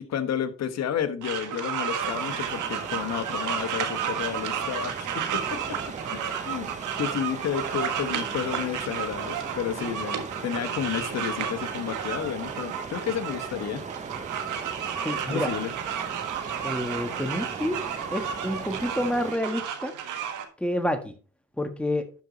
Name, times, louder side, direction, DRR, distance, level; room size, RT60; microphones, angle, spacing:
voice 1, 0.0-5.8 6.1-6.7 7.0-13.8 15.3-15.7, left 9 dB, 60° left, 1.2 m, -31 dB
sound 1, 1.2-20.4, right 8 dB, 85° right, 1.5 m, -32 dB
sound 2, 2.0-19.4, right 4 dB, 25° right, 0.8 m, -39 dB
voice 2, 15.0-15.5 16.6-17.8 18.1-19.9 20.6-21.1 21.6-22.1, left 1 dB, 5° left, 1.4 m, -28 dB
12.0 x 5.2 x 4.1 m
cardioid pair, 90°, 30 cm